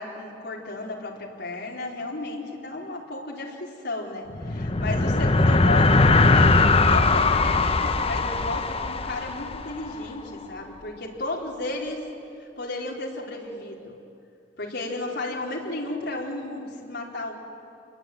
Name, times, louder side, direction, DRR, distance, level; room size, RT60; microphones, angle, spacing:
voice 1, 0.0-12.0 12.6-14.0 14.6-17.3, left 2 dB, 65° left, -1 dB, 4.5 m, -33 dB
sound 1, 4.3-10.0, left 3 dB, 35° left, 0.9 m, -20 dB
28.5 x 22.0 x 9.3 m, 2.6 s
head